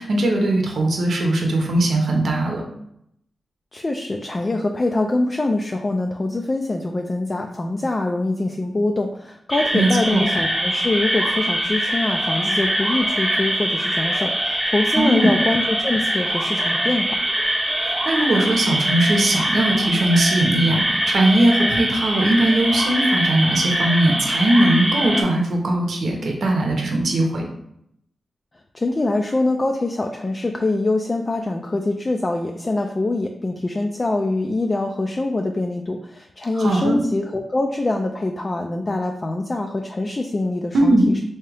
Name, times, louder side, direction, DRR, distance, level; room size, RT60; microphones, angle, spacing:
voice 1, 0.0-2.6 9.7-10.2 15.0-15.3 17.8-27.5 36.5-37.0 40.7-41.0, right 1 dB, 75° right, 1 dB, 0.7 m, -19 dB
voice 2, 3.7-17.2 28.7-41.2, left 2 dB, 30° left, 4 dB, 0.3 m, -24 dB
sound 1, 9.5-25.2, right 1 dB, 10° right, 0.8 m, -23 dB
3.5 x 2.8 x 3.3 m, 0.76 s
cardioid pair, 80°, 0 cm